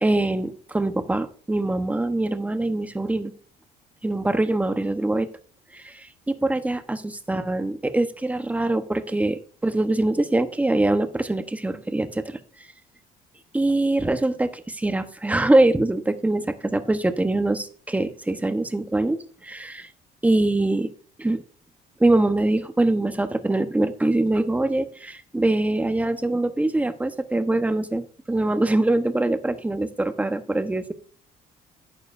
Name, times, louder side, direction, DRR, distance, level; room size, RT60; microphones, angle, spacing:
voice 1, 0.0-3.3 4.0-5.3 5.7-12.4 13.5-19.9 20.2-20.9 21.2-21.4 22.0-30.9, right 2 dB, 10° right, 8 dB, 1.0 m, -23 dB
11.5 x 8.7 x 2.6 m, 0.43 s
cardioid pair, 110°, 17 cm